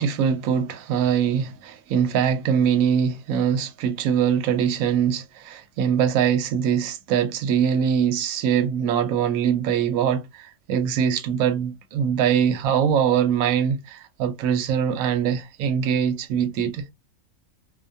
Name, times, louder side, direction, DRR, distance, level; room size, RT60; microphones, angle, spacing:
voice 1, 0.0-16.9, right 8 dB, 70° right, 1.0 m, -22 dB
2.6 x 2.2 x 2.6 m
omnidirectional pair, 1.6 m